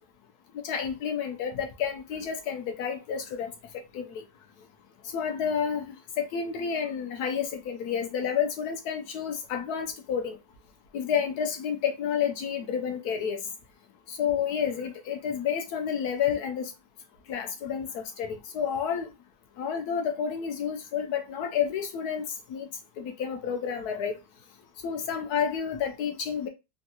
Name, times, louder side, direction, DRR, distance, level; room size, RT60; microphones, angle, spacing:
voice 1, 0.6-3.5 3.9-4.2 5.1-10.4 10.9-13.4 14.1-16.7 17.3-19.1 19.6-22.2 22.5-22.7 23.0-24.2 24.8-26.5, left 7 dB, 70° left, 1.0 m, -30 dB
3.5 x 2.2 x 2.7 m
omnidirectional pair, 1.8 m